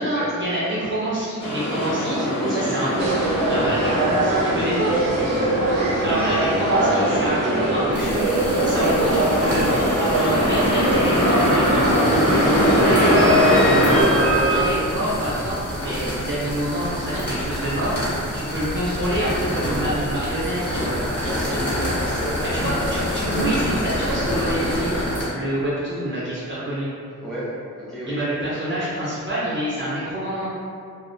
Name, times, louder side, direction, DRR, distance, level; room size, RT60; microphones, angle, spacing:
voice 1, 0.0-2.2 2.5-3.2 3.5-4.9 6.0-9.7 10.0-13.4 13.8-20.9 21.5-21.6 22.5-26.9 28.1-30.5, right 1 dB, 35° right, -9 dB, 0.5 m, -26 dB
sound 1, 1.4-14.0, equal, 70° left, 0.8 m, -22 dB
voice 2, 2.2-2.7 5.3-5.5 21.3-22.8 27.2-27.5 27.8-28.2, equal, ahead, -10 dB, 0.7 m, -31 dB
sound 2, 3.0-14.7, right 2 dB, 85° right, 0.5 m, -23 dB
sound 3, 7.9-25.2, equal, 35° left, 1.0 m, -27 dB
2.3 x 2.1 x 2.6 m, 2.3 s
wide cardioid pair, 100°, 33 cm